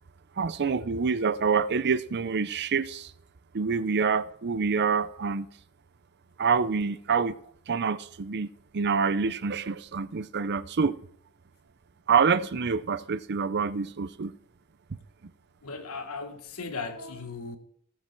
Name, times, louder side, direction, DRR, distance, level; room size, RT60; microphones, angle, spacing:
voice 1, 0.4-3.1 3.5-5.5 6.4-7.3 7.7-8.5 8.7-11.0 12.1-14.3, right 5 dB, 50° right, 0.6 m, -26 dB
voice 2, 15.6-17.6, left 4 dB, 70° left, 1.6 m, -37 dB
16.5 x 7.5 x 4.6 m
head